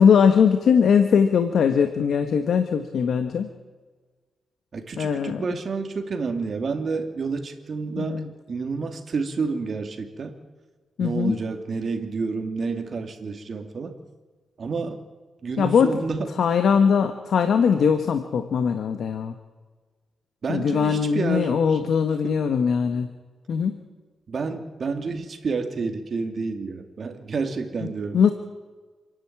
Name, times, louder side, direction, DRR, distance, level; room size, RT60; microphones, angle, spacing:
voice 1, 0.0-3.5 5.0-5.4 8.0-8.3 11.0-11.4 15.6-16.0 16.4-19.3 20.5-23.1 23.5-23.8 28.1-28.3, left 6 dB, 75° left, 8 dB, 1.4 m, -20 dB
voice 2, 4.7-10.4 11.0-14.0 14.6-15.0 15.4-16.3 20.4-21.8 24.3-28.2, right 4 dB, 50° right, 5 dB, 2.7 m, -29 dB
28.0 x 11.0 x 8.9 m, 1.4 s
cardioid pair, 95°, 0 cm